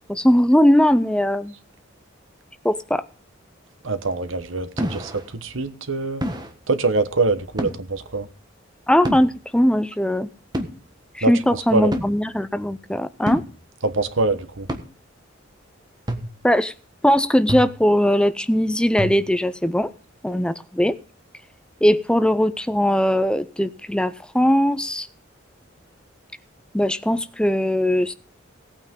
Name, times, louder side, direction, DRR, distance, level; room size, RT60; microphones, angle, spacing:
voice 1, 0.1-1.5 2.6-3.0 8.9-10.3 11.1-13.4 16.4-16.7 17.0-19.9 20.2-21.0 21.8-25.1 26.7-28.1, equal, 5° left, 0.5 m, -19 dB
voice 2, 3.8-5.1 5.4-6.2 6.7-8.3 11.2-11.3 11.7-12.0 13.8-14.7, right 3 dB, 85° right, 1.2 m, -23 dB
sound 1, 4.8-5.3 6.2-6.5 7.6-7.9 9.1-9.4 10.5-10.7 11.9-12.2 13.3-13.6 14.7-14.8 16.1-16.4 17.5-17.9 19.0-19.4, equal, 20° right, 1.4 m, -28 dB
17.5 x 8.9 x 3.7 m
head